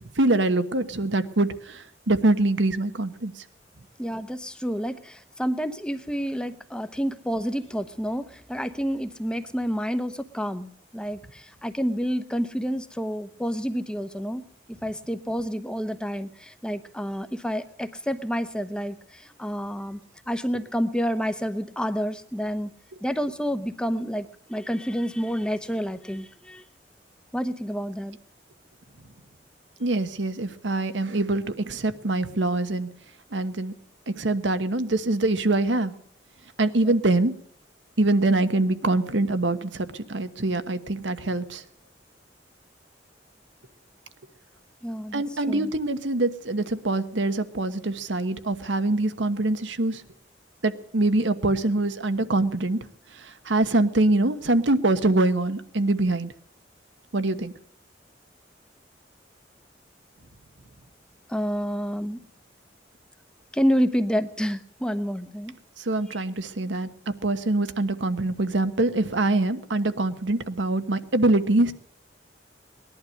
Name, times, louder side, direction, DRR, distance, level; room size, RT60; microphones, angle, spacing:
voice 1, 0.2-3.4 29.8-32.9 33.3-33.7 34.1-35.9 36.6-37.3 38.0-41.6 45.1-50.0 50.6-52.8 53.2-56.3 57.1-57.5 65.8-66.9 67.2-71.7, right 2 dB, 85° right, 10 dB, 1.2 m, -24 dB
voice 2, 4.0-14.4 14.8-20.0 20.3-22.7 23.0-26.6 27.3-28.2 36.8-36.9 44.8-45.7 61.3-62.2 63.5-65.5, equal, 5° left, 11 dB, 0.9 m, -29 dB
19.5 x 11.5 x 6.4 m, 0.62 s
head